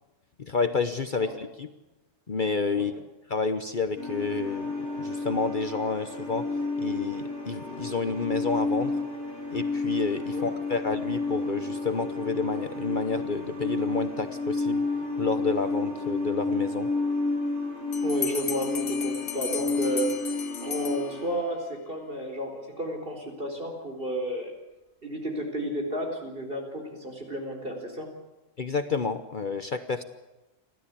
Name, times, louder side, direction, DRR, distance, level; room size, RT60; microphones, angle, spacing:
voice 1, 0.4-1.7 2.3-2.9 3.3-8.9 9.5-14.8 15.2-16.9 28.6-30.0, left 4 dB, 45° left, 9 dB, 1.0 m, -30 dB
sound 1, 4.0-21.2, left 3 dB, 10° left, 7.8 m, -31 dB
Bell, 17.9-21.6, left 8 dB, 70° left, 1.3 m, -36 dB
voice 2, 18.0-20.1 20.6-24.5 25.0-28.1, right 1 dB, 45° right, 3 dB, 4.7 m, -32 dB
29.5 x 13.0 x 8.5 m, 1.0 s
omnidirectional pair, 1.3 m